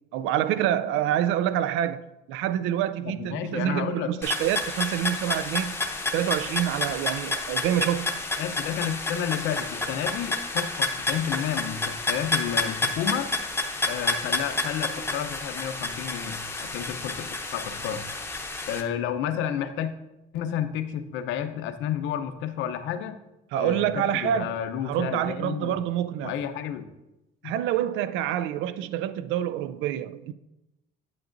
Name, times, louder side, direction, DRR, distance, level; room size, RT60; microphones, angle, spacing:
voice 1, 0.1-2.0 2.3-5.7 6.1-8.1 23.5-26.3 27.4-30.3, right 11 dB, 85° right, 0.4 m, -27 dB
voice 2, 3.0-4.1 8.4-13.3 13.9-18.0 18.7-19.9 20.3-23.2 23.6-25.8 26.2-26.9 27.4-27.5, left 9 dB, 80° left, 0.7 m, -31 dB
sound 1, 4.2-18.8, left 2 dB, 10° left, 0.7 m, -30 dB
8.9 x 8.6 x 2.6 m
cardioid pair, 145°, 19 cm